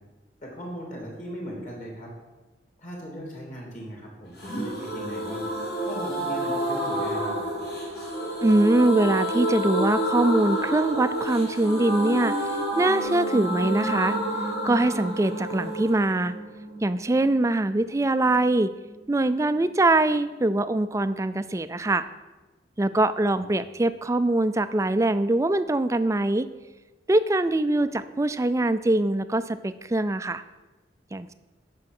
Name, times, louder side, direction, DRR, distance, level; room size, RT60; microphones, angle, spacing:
voice 1, 0.4-2.1 2.8-5.4 5.8-7.6 23.4-23.5 28.2-28.3, equal, 45° left, -1 dB, 3.0 m, -38 dB
sound 1, 4.4-18.0 18.3-18.4 18.6-18.7, right 1 dB, 60° left, 3.5 m, -29 dB
voice 2, 8.4-12.3 12.8-14.2 14.6-16.3 16.8-18.7 19.1-22.1 22.8-26.5 27.1-30.4 31.1-31.3, right 2 dB, 15° right, 13 dB, 0.4 m, -23 dB
9.6 x 6.1 x 6.6 m, 1.2 s
head